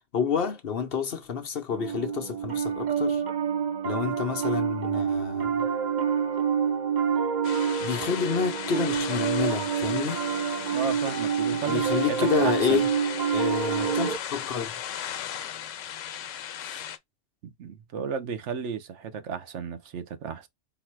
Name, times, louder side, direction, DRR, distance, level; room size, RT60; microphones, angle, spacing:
voice 1, 0.1-3.2 3.8-5.7 7.8-10.3 11.7-12.9 13.3-14.7 16.6-16.8, left 6 dB, 55° left, 0.9 m, -29 dB
Piano, 1.7-14.2, right 7 dB, 45° right, 0.7 m, -27 dB
sound 1, 7.4-17.0, left 10 dB, 85° left, 1.0 m, -37 dB
voice 2, 10.7-12.8 17.6-20.5, right 6 dB, 70° right, 1.0 m, -34 dB
3.9 x 2.7 x 4.4 m
omnidirectional pair, 1.3 m